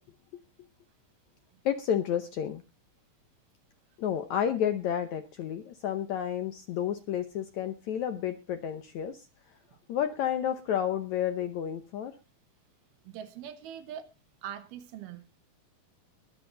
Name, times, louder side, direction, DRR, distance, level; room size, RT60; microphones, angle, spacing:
voice 1, 1.7-2.6 4.0-9.2 9.9-12.1, left 9 dB, 70° left, 1.8 m, -31 dB
voice 2, 13.1-14.1 14.4-15.2, right 9 dB, 80° right, 3.2 m, -42 dB
21.0 x 7.7 x 3.9 m
omnidirectional pair, 4.3 m